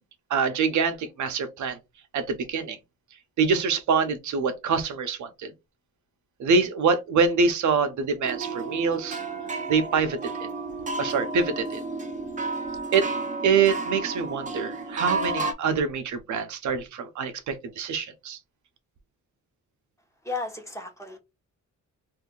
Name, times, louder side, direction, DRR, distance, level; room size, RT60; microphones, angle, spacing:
voice 1, 0.3-1.8 2.1-2.8 3.4-5.5 6.4-9.2 9.7-10.5 11.0-11.8 12.9-13.1 13.4-18.4, right 5 dB, 70° right, 0.7 m, -25 dB
sound 1, 8.2-15.5, right 3 dB, 25° right, 0.7 m, -32 dB
voice 2, 20.2-21.2, left 3 dB, 10° left, 1.0 m, -34 dB
2.7 x 2.5 x 3.7 m
cardioid pair, 120°, 30 cm